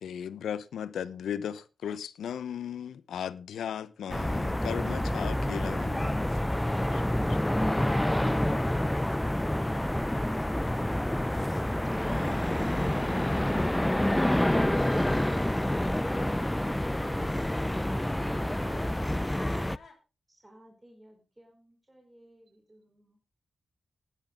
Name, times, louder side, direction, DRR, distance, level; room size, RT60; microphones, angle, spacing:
voice 1, 0.0-6.2 6.9-7.0 7.3-7.4, left 9 dB, 90° left, 0.9 m, -36 dB
sound 1, 4.1-19.8, left 1 dB, 10° left, 0.5 m, -28 dB
sound 2, 9.2-20.0, left 5 dB, 60° left, 4.3 m, -55 dB
voice 2, 16.0-16.1, right 7 dB, 85° right, 2.7 m, -56 dB
voice 3, 20.3-23.2, right 1 dB, 15° right, 4.3 m, -59 dB
16.0 x 11.0 x 3.8 m
cardioid pair, 60°, 0 cm